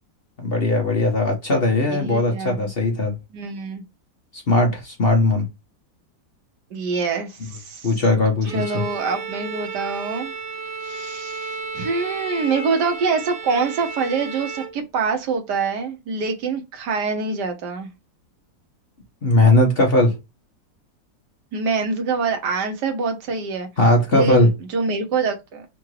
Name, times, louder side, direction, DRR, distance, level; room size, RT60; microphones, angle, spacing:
voice 1, 0.4-3.1 4.3-5.4 7.8-8.8 19.2-20.1 23.8-24.5, left 2 dB, 40° left, 1.0 m, -18 dB
voice 2, 1.9-2.7 3.3-3.8 6.7-8.0 8.5-10.3 10.8-17.9 21.5-23.7 24.1-25.7, right 4 dB, 65° right, 1.5 m, -25 dB
Bowed string instrument, 8.4-14.8, right 4 dB, 40° right, 0.8 m, -33 dB
3.8 x 2.5 x 4.6 m
omnidirectional pair, 2.0 m